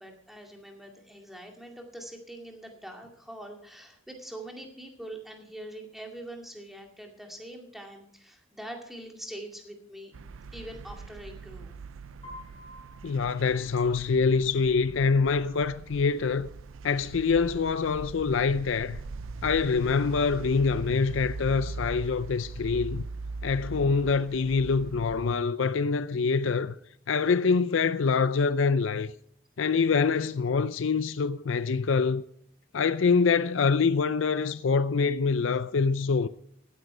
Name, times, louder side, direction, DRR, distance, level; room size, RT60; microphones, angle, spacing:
voice 1, 0.0-10.1 10.5-11.7 30.1-30.3, right 1 dB, ahead, 2.2 m, -43 dB
sound 1, 10.1-25.3, right 3 dB, 70° right, 0.4 m, -41 dB
Piano, 12.2-14.3, left 1 dB, 25° left, 5.2 m, -49 dB
voice 2, 13.0-16.5 16.8-19.0 19.4-23.0 23.4-26.7 27.1-29.1 29.6-32.2 32.7-36.3, left 5 dB, 65° left, 0.5 m, -25 dB
16.0 x 9.5 x 4.9 m
head